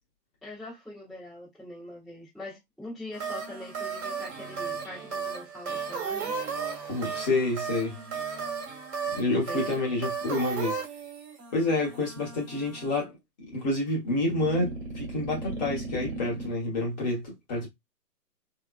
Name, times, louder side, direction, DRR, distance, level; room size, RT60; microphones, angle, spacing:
voice 1, 0.4-6.3 9.5-9.9, left 1 dB, ahead, 1.1 m, -43 dB
sound 1, 3.1-13.0 14.2-16.5, right 5 dB, 40° right, 1.5 m, -35 dB
voice 2, 6.9-7.9 9.2-10.8 11.5-17.7, left 2 dB, 25° left, 1.3 m, -28 dB
3.4 x 3.0 x 2.4 m
hypercardioid pair, 145°, 50 cm